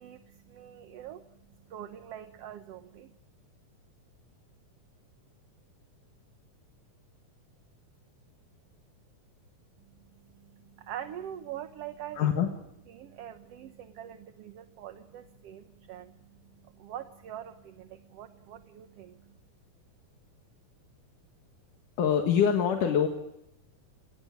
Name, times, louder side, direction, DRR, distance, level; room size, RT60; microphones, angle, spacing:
voice 1, 0.0-3.2 9.8-12.3 12.9-19.4, right 10 dB, 60° right, 8 dB, 1.9 m, -44 dB
voice 2, 12.1-12.5 22.0-23.1, left 8 dB, 80° left, 3 dB, 3.3 m, -24 dB
29.5 x 18.5 x 9.7 m, 0.86 s
omnidirectional pair, 3.6 m